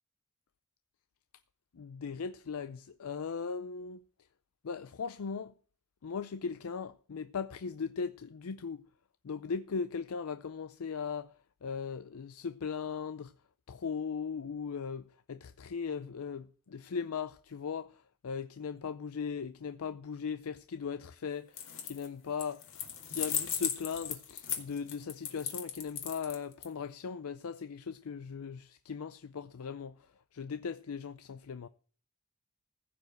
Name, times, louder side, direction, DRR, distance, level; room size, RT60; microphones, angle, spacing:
voice 1, 1.7-4.0 4.6-5.5 6.0-8.8 9.2-11.3 11.6-13.3 13.7-21.5 21.8-22.6 23.1-30.0 30.3-31.7, left 6 dB, 80° left, 0.5 m, -38 dB
sound 1, 21.5-22.1 22.4-26.6, left 9 dB, 65° left, 2.2 m, -36 dB
15.5 x 5.2 x 7.8 m
head